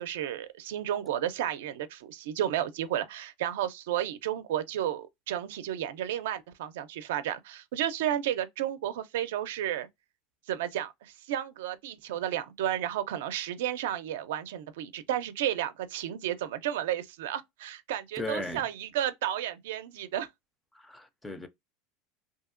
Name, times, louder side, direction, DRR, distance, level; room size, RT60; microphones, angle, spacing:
voice 1, 0.0-9.9 10.5-20.3, right 11 dB, 90° right, 0.4 m, -32 dB
voice 2, 18.2-18.7 20.7-21.5, left 1 dB, 5° left, 0.3 m, -36 dB
2.7 x 2.7 x 2.4 m
supercardioid pair, 160°, 0 cm